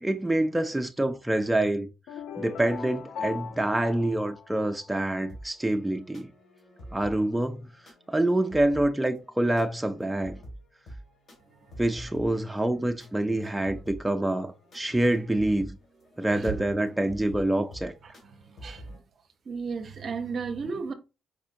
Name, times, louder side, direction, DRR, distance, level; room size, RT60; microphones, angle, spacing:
voice 1, 0.0-1.9 2.4-6.3 6.9-7.7 8.1-10.4 11.8-15.8 16.2-17.9, right 1 dB, 10° right, 0.4 m, -26 dB
sound 1, 2.1-5.1, left 7 dB, 80° left, 0.4 m, -39 dB
sound 2, 5.3-19.0, right 1 dB, 55° left, 1.8 m, -48 dB
voice 2, 16.3-16.8 18.0-19.0 19.5-20.9, right 5 dB, 50° right, 0.6 m, -35 dB
4.4 x 2.5 x 2.5 m
cardioid pair, 90°, 0 cm